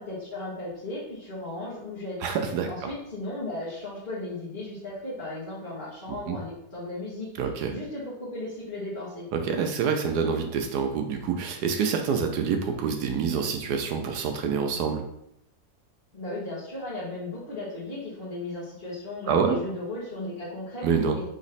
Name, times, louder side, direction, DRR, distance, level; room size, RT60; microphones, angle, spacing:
voice 1, 0.0-2.2 2.7-7.3 7.7-9.3 16.1-20.9 21.1-21.2, left 2 dB, 30° left, -12 dB, 1.6 m, -36 dB
voice 2, 2.2-2.9 6.1-6.4 7.4-7.7 9.3-15.0 19.3-19.6 20.8-21.2, right 6 dB, 75° right, 5 dB, 1.1 m, -27 dB
3.9 x 3.0 x 4.1 m, 0.77 s
omnidirectional pair, 1.8 m